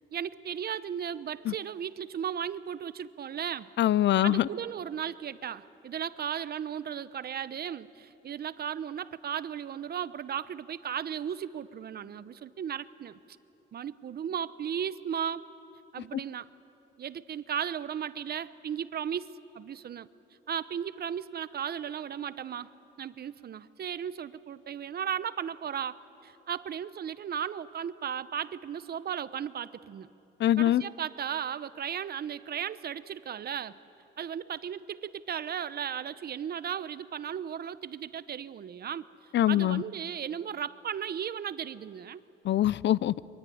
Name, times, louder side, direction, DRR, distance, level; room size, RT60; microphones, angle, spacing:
voice 1, 0.1-3.7 4.2-13.2 13.7-15.5 15.9-16.5 17.0-20.1 20.5-22.7 23.0-30.1 30.6-33.8 34.2-39.1 39.5-42.2, right 8 dB, 50° right, 15 dB, 0.9 m, -35 dB
voice 2, 3.8-4.5 30.4-30.8 39.3-39.8 42.4-43.1, left 12 dB, 65° left, 19 dB, 0.6 m, -23 dB
26.0 x 23.5 x 9.5 m, 2.9 s
cardioid pair, 90°, 20 cm